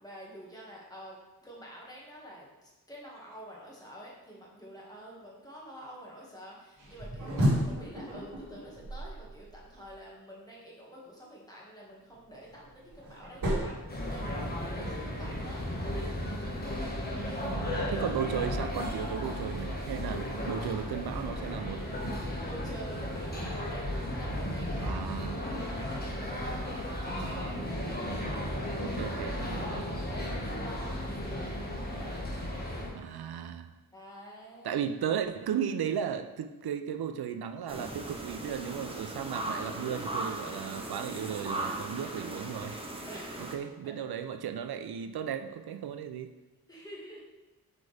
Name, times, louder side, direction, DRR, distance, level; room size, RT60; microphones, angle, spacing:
voice 1, 0.0-13.8 14.1-16.0 22.4-27.6 27.9-28.1 28.5-29.1 29.4-32.1 33.9-34.8 43.1-43.9 46.7-47.2, equal, 10° left, -4 dB, 1.8 m, -48 dB
sound 1, 6.8-9.9 12.1-14.7, equal, 60° right, 2.2 m, -33 dB
sound 2, 13.9-32.9, left 1 dB, 25° left, 1.4 m, -35 dB
voice 2, 17.5-21.8 24.8-25.4 27.1-27.5 28.8-29.8 32.9-33.7 34.6-42.8 43.5-46.3, right 8 dB, 90° right, 8 dB, 0.5 m, -35 dB
sound 3, 37.7-43.5, right 2 dB, 15° right, 0.9 m, -38 dB
8.2 x 4.9 x 3.4 m, 1.1 s
wide cardioid pair, 130°, 37 cm